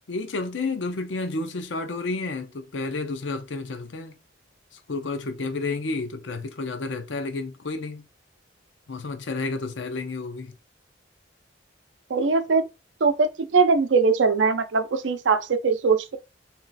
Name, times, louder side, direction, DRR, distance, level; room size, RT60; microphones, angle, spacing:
voice 1, 0.1-4.2 4.7-8.1 8.9-10.5, left 3 dB, 85° left, 0.6 m, -31 dB
voice 2, 12.1-12.7 13.0-16.2, right 4 dB, 80° right, 0.5 m, -21 dB
3.1 x 2.9 x 3.9 m
head